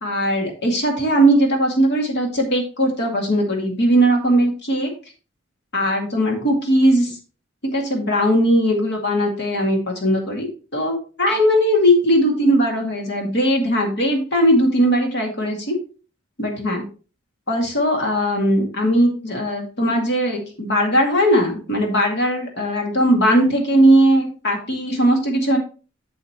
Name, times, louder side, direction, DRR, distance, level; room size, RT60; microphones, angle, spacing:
voice 1, 0.0-4.9 5.7-7.2 7.7-15.8 16.4-16.9 17.5-25.6, equal, 60° left, 2 dB, 2.1 m, -19 dB
8.0 x 7.5 x 2.9 m, 0.36 s
head